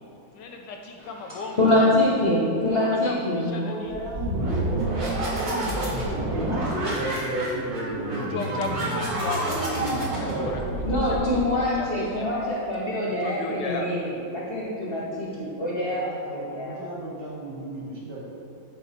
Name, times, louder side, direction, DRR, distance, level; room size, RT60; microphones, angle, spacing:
voice 1, 0.3-1.9 2.8-4.1 5.1-5.4 8.1-10.6 10.9-12.3 13.0-13.9, left 4 dB, 70° left, 3 dB, 1.2 m, -36 dB
voice 2, 1.6-3.6 10.8-16.0 16.3-16.7, left 1 dB, 45° left, -6 dB, 0.8 m, -24 dB
voice 3, 3.6-10.8 15.9-18.2, right 2 dB, 75° right, -6 dB, 2.4 m, -36 dB
sound 1, 3.9-11.5, right 1 dB, 50° right, 1.9 m, -28 dB
8.5 x 4.2 x 4.2 m, 2.6 s
omnidirectional pair, 2.2 m